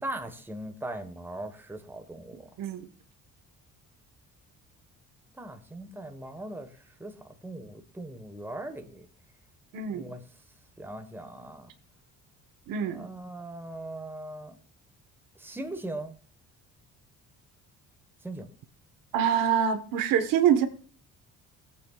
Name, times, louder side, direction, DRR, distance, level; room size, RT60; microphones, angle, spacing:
voice 1, 0.0-2.5 5.4-6.7 7.0-9.1 9.9-10.2 10.8-11.7 12.8-14.6 15.4-16.1 18.2-18.5, right 1 dB, 5° right, 6 dB, 1.3 m, -39 dB
voice 2, 12.7-13.0 19.1-20.7, right 8 dB, 85° right, 7 dB, 1.3 m, -25 dB
21.5 x 8.4 x 2.4 m, 0.42 s
cardioid pair, 110°, 33 cm